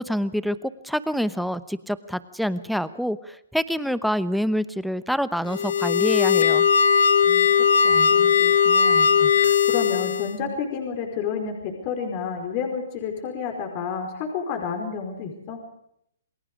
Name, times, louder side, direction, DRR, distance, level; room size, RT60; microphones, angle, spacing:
voice 1, 0.0-6.7, equal, ahead, 15 dB, 0.9 m, -26 dB
sound 1, 5.5-10.4, left 7 dB, 70° left, 1.2 m, -19 dB
voice 2, 7.7-15.6, left 6 dB, 35° left, 3 dB, 4.7 m, -31 dB
28.5 x 20.5 x 5.0 m, 0.72 s
hypercardioid pair, 145°, 0 cm